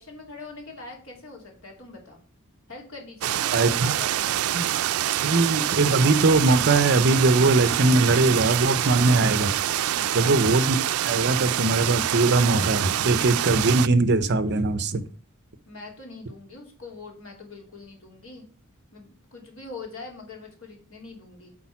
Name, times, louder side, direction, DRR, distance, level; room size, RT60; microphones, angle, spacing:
voice 1, 0.0-2.2 2.7-4.7 9.9-10.2 15.7-18.5 18.9-21.5, left 3 dB, 70° left, 3.0 m, -43 dB
sound 1, 3.2-13.9, right 12 dB, 90° right, 0.4 m, -26 dB
voice 2, 3.5-3.9 4.5-4.7 5.2-9.5 10.1-10.8 11.0-15.0, right 2 dB, 55° right, 0.7 m, -21 dB
8.8 x 4.3 x 5.9 m
head